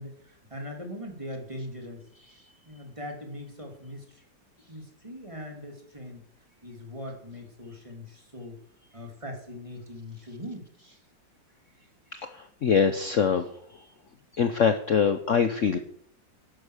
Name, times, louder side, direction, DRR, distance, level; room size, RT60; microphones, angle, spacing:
voice 1, 0.0-2.0 2.6-4.2 4.7-6.2 6.6-8.6 8.9-10.7, left 1 dB, 15° right, 3 dB, 3.3 m, -40 dB
voice 2, 12.2-13.5 14.3-15.8, left 6 dB, 50° left, 9 dB, 1.2 m, -23 dB
13.0 x 11.5 x 6.6 m, 0.63 s
omnidirectional pair, 2.0 m